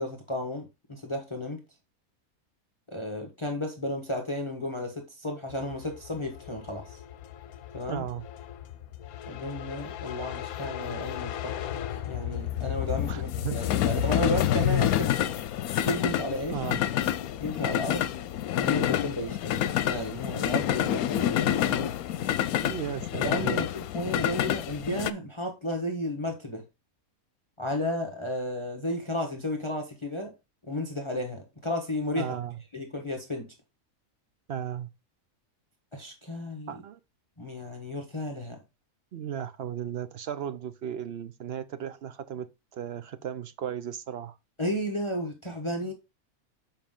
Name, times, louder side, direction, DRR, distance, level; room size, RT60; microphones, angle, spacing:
voice 1, 0.0-1.6 2.9-7.0 7.7-8.0 9.3-11.8 12.1-15.3 15.8-16.6 17.4-18.1 18.6-22.0 23.2-26.6 27.6-30.3 30.6-32.3 32.7-33.5 35.9-36.8 37.4-38.6 44.6-45.9, left 1 dB, 20° left, 1.2 m, -33 dB
sound 1, 5.6-25.1, left 11 dB, 85° left, 1.1 m, -29 dB
voice 2, 7.9-8.3 13.1-13.6 16.5-16.8 22.6-23.7 32.1-32.6 34.5-34.9 36.7-37.0 39.1-44.4, right 9 dB, 60° right, 0.7 m, -35 dB
7.2 x 5.5 x 3.7 m
omnidirectional pair, 1.5 m